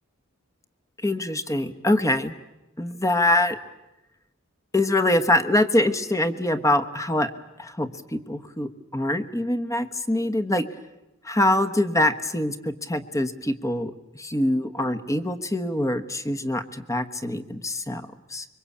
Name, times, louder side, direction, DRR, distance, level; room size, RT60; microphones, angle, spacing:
voice 1, 1.0-2.3 2.8-3.6 4.7-7.3 7.6-10.7 11.2-18.5, left 1 dB, 15° left, 10 dB, 1.2 m, -24 dB
25.5 x 23.5 x 8.6 m, 0.98 s
head